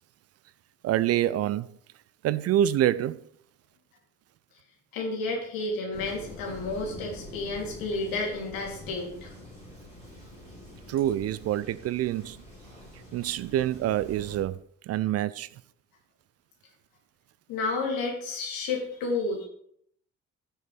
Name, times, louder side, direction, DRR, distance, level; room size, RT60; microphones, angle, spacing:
voice 1, 0.8-1.7 2.2-3.2 10.9-12.4 13.1-14.6 14.9-15.5, right 12 dB, 40° right, 0.4 m, -26 dB
voice 2, 4.9-9.3 17.5-19.5, left 3 dB, 65° left, 3.2 m, -31 dB
Thunder, 5.9-14.4, equal, 85° right, 3.0 m, -46 dB
15.0 x 6.7 x 3.4 m
figure-of-eight pair, 45°, 37 cm